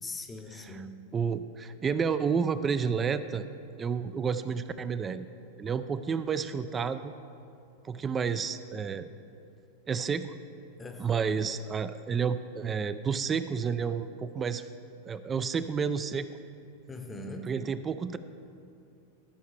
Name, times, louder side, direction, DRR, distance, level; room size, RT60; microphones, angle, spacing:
voice 1, 0.0-0.9 10.8-11.4 16.9-17.5, left 2 dB, 15° left, 6 dB, 0.8 m, -41 dB
voice 2, 1.1-3.5 3.8-5.3 5.6-7.1 7.8-9.1 9.9-10.3 11.0-14.6 15.1-16.3 17.5-18.2, right 6 dB, 25° right, 12 dB, 0.3 m, -30 dB
14.0 x 5.6 x 3.2 m, 2.5 s
hypercardioid pair, 95°, 0 cm